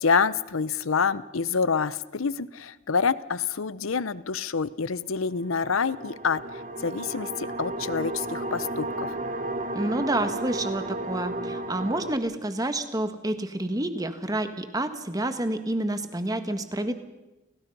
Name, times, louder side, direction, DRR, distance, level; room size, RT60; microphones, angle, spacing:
voice 1, 0.0-9.2, left 5 dB, 85° left, 17 dB, 0.8 m, -27 dB
sound 1, 5.3-12.2, right 2 dB, 40° right, 1.4 m, -33 dB
voice 2, 9.7-16.9, right 1 dB, 20° right, 9 dB, 1.4 m, -29 dB
30.0 x 18.5 x 5.5 m, 1.0 s
head